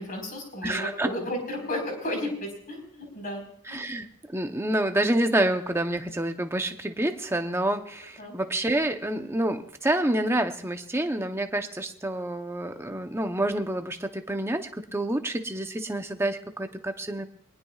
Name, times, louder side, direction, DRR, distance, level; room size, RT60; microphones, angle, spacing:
voice 1, 0.0-3.9 8.2-8.3, left 1 dB, 40° left, 2 dB, 4.6 m, -34 dB
voice 2, 0.6-1.1 3.7-17.3, right 1 dB, 10° right, 6 dB, 0.8 m, -28 dB
22.5 x 19.0 x 2.4 m, 0.63 s
head